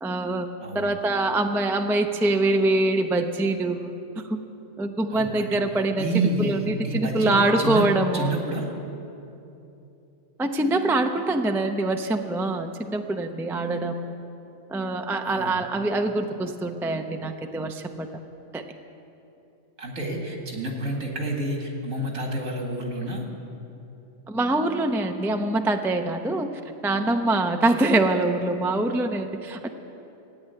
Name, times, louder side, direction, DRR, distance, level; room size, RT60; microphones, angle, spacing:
voice 1, 0.0-0.5 0.7-4.0 4.3-4.4 4.8-8.4 10.4-14.0 14.7-18.1 18.5-18.6 24.3-26.5 26.8-29.7, right 2 dB, 5° right, 5 dB, 0.3 m, -24 dB
voice 2, 5.1-5.6 6.0-7.8 8.1-8.7 15.2-15.6 19.8-23.3, right 2 dB, 80° right, 1 dB, 2.5 m, -29 dB
16.0 x 8.8 x 9.4 m, 2.9 s
omnidirectional pair, 1.4 m